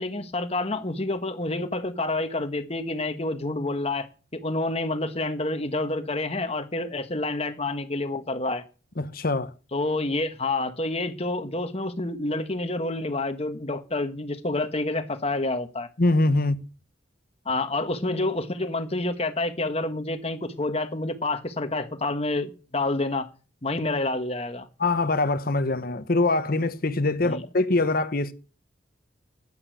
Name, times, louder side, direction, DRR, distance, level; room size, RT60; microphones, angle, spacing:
voice 1, 0.0-8.6 9.7-15.9 17.4-23.3 23.6-24.7 27.2-27.4, left 2 dB, 35° left, 1.4 m, -28 dB
voice 2, 9.0-9.5 16.0-16.6 24.8-28.3, left 2 dB, 50° left, 1.1 m, -23 dB
10.5 x 9.9 x 8.0 m
head